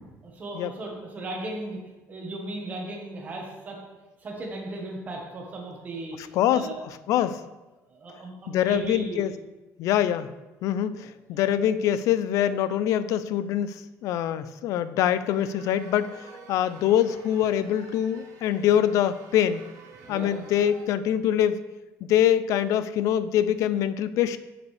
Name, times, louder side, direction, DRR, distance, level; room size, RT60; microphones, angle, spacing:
voice 1, 0.2-1.8 2.1-3.8 4.2-6.8 7.9-9.2 10.9-11.4 19.9-20.4, right 2 dB, 25° right, -1 dB, 1.4 m, -36 dB
voice 2, 6.3-6.7 7.1-7.4 8.5-9.3 9.8-10.3 10.6-19.6 20.1-21.6 22.0-24.4, left 10 dB, 60° left, 14 dB, 0.4 m, -24 dB
sound 1, 15.3-20.8, right 4 dB, 70° right, 1.2 m, -50 dB
6.9 x 6.9 x 3.3 m, 1.1 s
cardioid pair, 175°, 6 cm